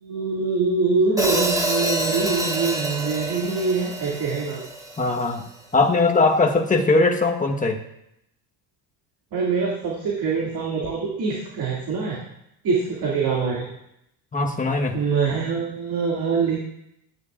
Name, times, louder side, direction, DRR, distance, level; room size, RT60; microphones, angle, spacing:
voice 1, 0.0-4.7 9.3-12.2 12.6-13.7 14.9-16.6, right 4 dB, 45° right, -4 dB, 2.4 m, -24 dB
Hi-hat, 1.2-5.3, right 1 dB, 5° right, 1.6 m, -27 dB
voice 2, 5.0-5.4 5.7-7.8 14.3-15.0, left 3 dB, 15° left, 2 dB, 1.2 m, -20 dB
13.5 x 9.3 x 2.4 m, 0.81 s
supercardioid pair, 90°, 47 cm